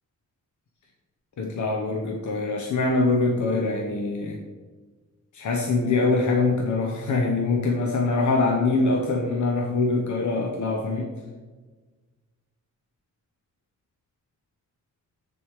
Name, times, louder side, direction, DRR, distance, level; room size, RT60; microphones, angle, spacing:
voice 1, 1.4-4.4 5.3-11.1, left 3 dB, 65° left, 1 dB, 0.9 m, -24 dB
9.7 x 3.7 x 4.7 m, 1.3 s
wide cardioid pair, 125°, 32 cm